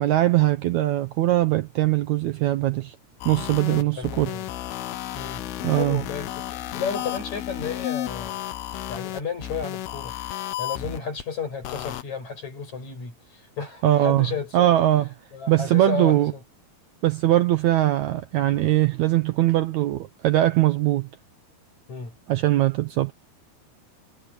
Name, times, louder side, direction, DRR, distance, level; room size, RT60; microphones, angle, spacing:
voice 1, 0.0-3.0 3.3-4.3 5.6-6.0 13.8-14.3 14.5-15.1 15.5-16.3 17.0-21.1 22.3-23.1, right 14 dB, 85° right, 1.6 m, -21 dB
sound 1, 3.2-11.2 11.6-12.0, left 13 dB, 85° left, 3.1 m, -33 dB
voice 2, 3.6-4.5 5.1-5.4 5.7-10.1 10.6-14.8 15.3-16.4 21.9-22.1, left 6 dB, 45° left, 8.1 m, -33 dB
omnidirectional pair, 4.5 m